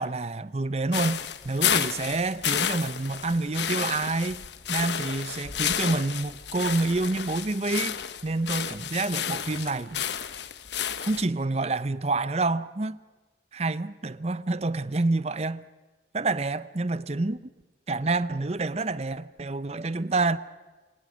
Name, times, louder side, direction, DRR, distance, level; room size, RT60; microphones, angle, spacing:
voice 1, 0.0-4.4 4.7-10.0 11.0-13.0 13.5-15.6 16.1-17.4 17.9-20.4, right 3 dB, 35° right, 0.7 m, -28 dB
sound 1, 0.9-11.3, left 9 dB, 80° left, 1.1 m, -31 dB
29.0 x 25.5 x 6.3 m
head